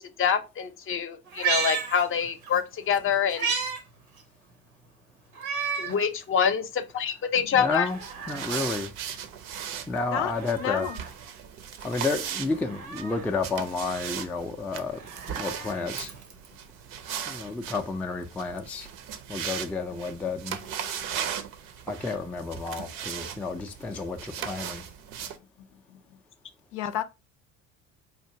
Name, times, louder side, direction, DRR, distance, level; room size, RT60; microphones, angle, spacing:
voice 1, 0.0-3.5 5.8-7.9, left 7 dB, 30° left, 0.7 m, -26 dB
Meow, 1.3-2.6 2.9-3.8 4.2-4.3 5.3-6.0 6.5-6.6 7.6-8.6 10.1-11.1 12.5-13.3 14.8-16.5 17.7-17.8, right 6 dB, 85° right, 0.9 m, -33 dB
voice 2, 7.5-8.0 8.3-8.9 9.9-10.9 11.8-15.0 15.3-16.1 17.3-18.9 19.3-20.6 21.9-24.8, left 3 dB, 5° left, 0.4 m, -31 dB
sound 1, 7.9-25.4, right 8 dB, 50° right, 0.6 m, -38 dB
voice 3, 10.6-11.0 26.7-27.0, left 10 dB, 70° left, 0.6 m, -30 dB
4.5 x 2.4 x 2.7 m
hypercardioid pair, 65°, 41 cm